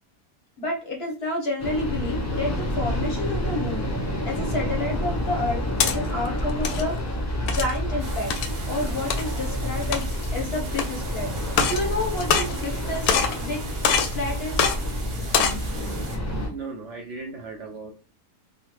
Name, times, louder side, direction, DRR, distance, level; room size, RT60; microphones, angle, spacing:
voice 1, 0.6-3.9 4.2-6.9 7.4-8.3 8.7-13.6 14.0-14.6, left 2 dB, 50° left, 0 dB, 0.8 m, -30 dB
sound 1, 1.6-16.5, equal, 20° left, 0.5 m, -29 dB
sound 2, 5.4-6.0 6.5-6.8 7.5-7.8 8.3-8.5 9.1-9.2 9.8-10.3 10.8-10.9 11.5-11.8 12.2-12.8 13.1-13.4 13.8-14.2 14.6-14.8 15.2-15.6, left 6 dB, 75° left, 1.0 m, -23 dB
sound 3, 8.0-16.2, right 3 dB, 85° right, 1.4 m, -40 dB
voice 2, 16.4-17.9, right 4 dB, 65° right, 0 dB, 0.8 m, -36 dB
3.7 x 2.1 x 2.9 m, 0.33 s
omnidirectional pair, 1.7 m